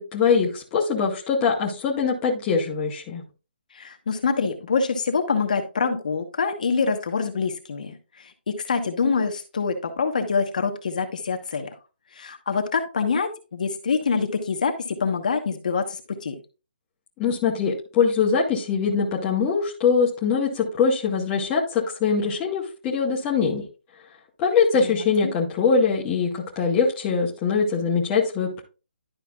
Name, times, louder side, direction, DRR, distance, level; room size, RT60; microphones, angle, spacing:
voice 1, 0.0-3.2 17.2-23.6 24.4-28.6, left 5 dB, 10° left, -4 dB, 0.8 m, -22 dB
voice 2, 3.7-11.7 12.1-16.4 24.8-25.0, left 5 dB, 45° left, 6 dB, 1.1 m, -25 dB
11.5 x 4.9 x 2.3 m, 0.31 s
hypercardioid pair, 175°, 6 cm